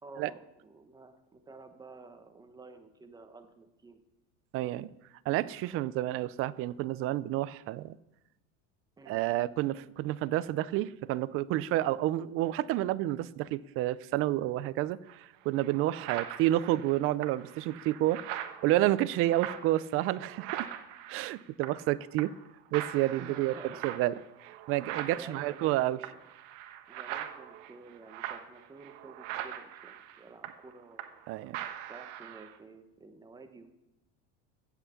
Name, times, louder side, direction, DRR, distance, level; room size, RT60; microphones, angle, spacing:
voice 1, 0.0-4.0 9.0-9.2 19.6-19.7 23.2-24.0 25.1-26.2 26.9-31.5 31.9-33.7, right 3 dB, 10° right, 7 dB, 1.0 m, -51 dB
voice 2, 4.5-4.9 5.3-7.9 9.1-18.2 18.6-20.7 21.1-22.3 22.7-23.5 23.8-24.1 24.7-26.0 31.3-31.6, right 15 dB, 40° right, 18 dB, 0.4 m, -29 dB
sound 1, 15.1-15.2 15.6-21.9 22.2-22.5 22.7-31.3 31.5-32.6, right 11 dB, 85° right, 1.3 m, -42 dB
16.0 x 5.9 x 7.1 m, 0.95 s
cardioid pair, 160°, 35 cm